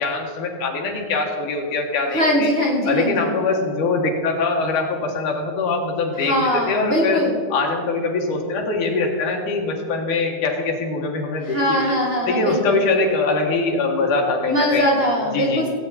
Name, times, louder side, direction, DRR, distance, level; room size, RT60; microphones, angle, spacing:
voice 1, 0.0-2.5 2.9-7.2 7.5-12.0 12.3-14.9 15.3-15.7, left 3 dB, 85° left, 1 dB, 3.0 m, -23 dB
voice 2, 2.1-3.3 6.2-7.3 11.5-12.8 14.5-15.7, equal, 35° right, -2 dB, 1.0 m, -21 dB
16.5 x 8.5 x 4.2 m, 2.1 s
omnidirectional pair, 3.5 m